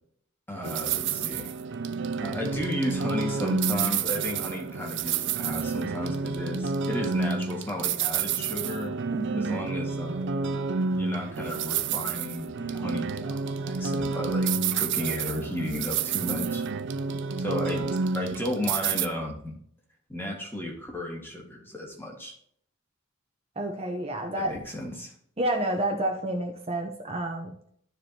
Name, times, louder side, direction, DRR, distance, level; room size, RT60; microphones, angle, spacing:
voice 1, 0.5-1.5 2.2-9.0 9.3-10.3 10.9-16.6 17.4-19.6 20.1-22.3 24.4-25.1, left 1 dB, 10° left, -1 dB, 2.0 m, -34 dB
sound 1, 0.6-19.1, right 5 dB, 60° right, 0.5 m, -29 dB
voice 2, 9.1-9.6 23.6-24.6 25.4-27.5, right 1 dB, 30° right, 1 dB, 1.0 m, -29 dB
13.5 x 4.9 x 2.9 m, 0.65 s
head